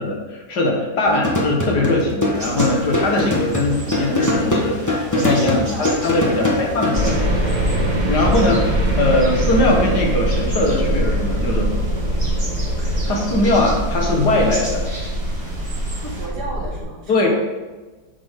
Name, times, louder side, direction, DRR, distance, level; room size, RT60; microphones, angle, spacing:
voice 1, 0.0-7.4 8.1-11.7 12.8-14.8 17.1-17.3, left 2 dB, 75° left, 0 dB, 2.2 m, -20 dB
sound 1, 1.0-7.2, left 1 dB, 10° left, 1.4 m, -22 dB
sound 2, 2.3-16.3, right 1 dB, 45° right, 2.4 m, -35 dB
sound 3, 6.9-16.8, right 1 dB, 25° right, 1.8 m, -22 dB
voice 2, 16.0-17.3, right 2 dB, 75° right, -3 dB, 2.6 m, -33 dB
10.0 x 7.0 x 3.8 m, 1.2 s
omnidirectional pair, 1.8 m